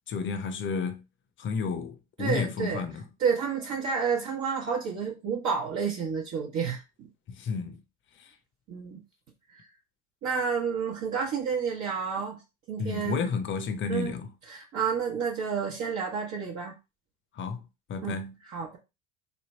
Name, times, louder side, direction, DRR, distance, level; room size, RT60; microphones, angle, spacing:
voice 1, 0.1-1.0 1.4-3.1 7.3-7.8 8.2-8.3 12.8-14.3 17.3-17.6 17.9-18.4, left 5 dB, 35° left, 0.7 m, -31 dB
voice 2, 2.2-2.8 3.2-7.1 8.7-9.0 9.5-9.6 10.2-12.4 12.7-13.3 13.9-14.1 14.5-16.7 18.0-18.2 18.5-18.8, right 6 dB, 55° right, 1.0 m, -30 dB
3.4 x 2.2 x 4.2 m
hypercardioid pair, 75°, 34 cm